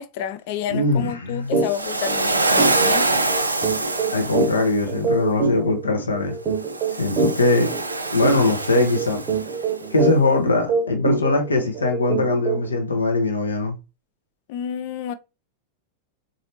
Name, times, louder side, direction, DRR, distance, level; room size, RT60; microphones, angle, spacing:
voice 1, 0.0-3.2 14.5-15.1, left 9 dB, 50° left, 0.4 m, -30 dB
voice 2, 0.7-1.6 3.6-3.8 4.1-6.4 7.0-7.7 8.1-9.2 9.9-13.7, left 2 dB, 75° left, 0.9 m, -21 dB
sound 1, 1.5-1.7 2.0-2.2 2.6-12.8, right 4 dB, 30° right, 1.0 m, -25 dB
Waves surf, 1.6-4.8 6.6-9.7, right 2 dB, 80° right, 0.4 m, -24 dB
4.1 x 2.7 x 2.8 m
figure-of-eight pair, 90°, 0 cm